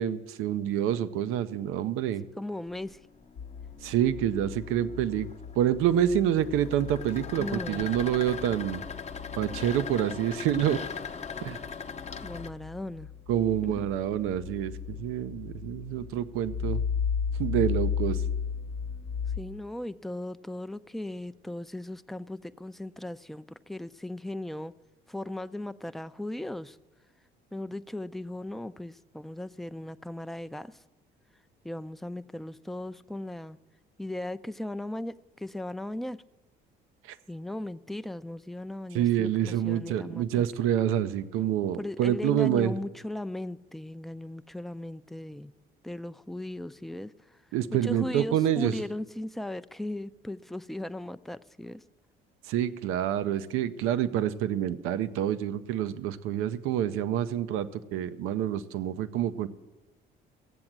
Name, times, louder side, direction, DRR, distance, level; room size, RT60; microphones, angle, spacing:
voice 1, 0.0-2.2 3.8-5.3 5.6-8.8 9.4-10.8 11.4-11.6 13.3-16.8 17.4-18.2 37.1-37.2 38.9-42.7 47.5-48.8 52.4-59.5, right 10 dB, 85° right, 13 dB, 0.6 m, -27 dB
voice 2, 2.4-3.0 7.4-7.9 12.2-13.1 13.6-13.8 19.4-24.7 25.1-26.8 27.5-30.8 31.6-33.6 34.0-36.2 37.3-40.5 41.8-45.5 45.8-47.4 47.8-51.8, left 1 dB, ahead, 11 dB, 0.4 m, -37 dB
sound 1, 2.7-12.5, left 6 dB, 30° left, 0.8 m, -40 dB
sound 2, 3.4-19.4, left 7 dB, 75° left, 0.9 m, -35 dB
15.5 x 7.8 x 7.4 m, 1.0 s
supercardioid pair, 80°, 21 cm